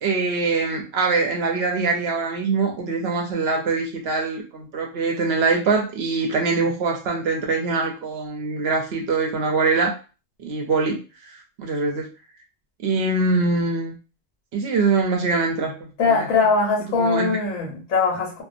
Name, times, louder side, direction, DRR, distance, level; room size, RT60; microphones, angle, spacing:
voice 1, 0.0-9.9 10.4-11.0 11.6-12.1 12.8-13.9 14.5-16.3 17.0-17.3, right 4 dB, 65° right, 2 dB, 0.7 m, -23 dB
voice 2, 16.0-18.4, left 4 dB, 75° left, 1 dB, 1.1 m, -21 dB
2.5 x 2.1 x 2.5 m, 0.33 s
omnidirectional pair, 1.4 m